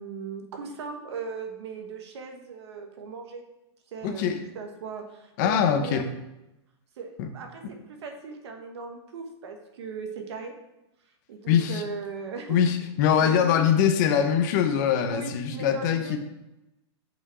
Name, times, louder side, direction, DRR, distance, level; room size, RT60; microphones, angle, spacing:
voice 1, 0.0-3.4 3.9-4.3 4.5-6.0 7.0-10.5 11.3-12.6 13.2-13.6 15.1-16.2, right 5 dB, 70° right, 4 dB, 1.5 m, -38 dB
voice 2, 4.0-4.4 5.4-6.0 7.2-7.3 11.5-11.8 12.5-16.2, left 8 dB, 40° left, 6 dB, 0.8 m, -23 dB
6.1 x 5.2 x 4.9 m, 0.95 s
supercardioid pair, 165°, 15 cm